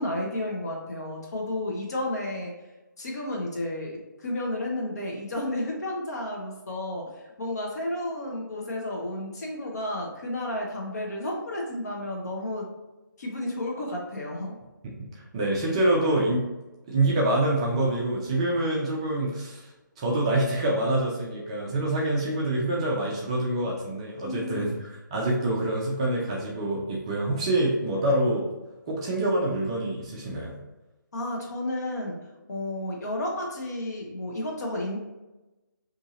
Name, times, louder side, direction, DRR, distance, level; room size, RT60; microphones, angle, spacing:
voice 1, 0.0-2.5 3.0-12.7 13.2-14.6 24.2-24.7 31.1-32.2 32.5-35.0, left 1 dB, 50° left, -1 dB, 0.9 m, -32 dB
voice 2, 15.3-16.5 16.9-19.6 20.0-28.5 28.9-30.5, right 1 dB, 15° right, -4 dB, 0.3 m, -26 dB
2.7 x 2.6 x 3.9 m, 1.1 s
figure-of-eight pair, 155°, 11 cm